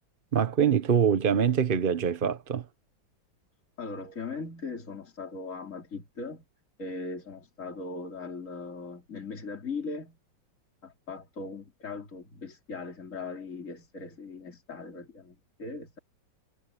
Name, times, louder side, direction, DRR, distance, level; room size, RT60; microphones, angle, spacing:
voice 1, 0.3-2.6, right 7 dB, 40° right, 0.8 m, -24 dB
voice 2, 3.8-6.4 6.8-10.2 10.8-16.0, left 4 dB, 40° left, 3.8 m, -39 dB
omnidirectional pair, 2.0 m